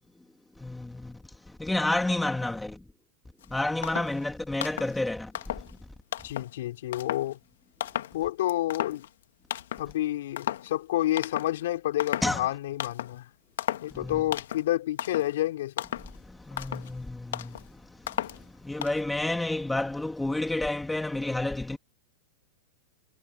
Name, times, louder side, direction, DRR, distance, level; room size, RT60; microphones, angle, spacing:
voice 1, 1.6-2.7 3.5-5.3 12.2-12.4 14.0-14.1 16.5-17.0 18.7-21.8, left 2 dB, 5° left, 1.3 m, -29 dB
sound 1, 3.4-3.5 3.8-4.2 4.6-5.0 5.3-5.8 6.1-6.6 6.9-7.3 7.8-8.2 8.5-9.2 9.5-9.9 10.4-10.7 11.2-11.6 12.0-12.4 12.8-13.2 13.6-13.9 14.3-14.7 15.0-15.3 15.8-16.2 16.5-16.9 17.3-17.6 18.1-18.4 18.8-19.0, left 11 dB, 80° left, 1.4 m, -34 dB
voice 2, 6.2-7.4 8.1-9.1 9.8-13.3 13.8-15.9, left 14 dB, 65° left, 3.8 m, -29 dB
supercardioid pair, 180°, 0 cm